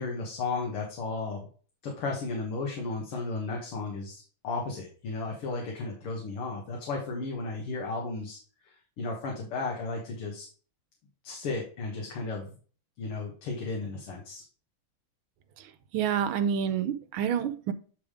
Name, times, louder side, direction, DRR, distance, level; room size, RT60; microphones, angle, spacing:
voice 1, 0.0-1.5 1.8-8.4 8.7-10.5 11.2-12.5 13.0-14.4, left 3 dB, 80° left, 2.4 m, -34 dB
voice 2, 15.9-17.7, right 8 dB, 75° right, 1.4 m, -28 dB
9.2 x 3.5 x 4.9 m
omnidirectional pair, 2.4 m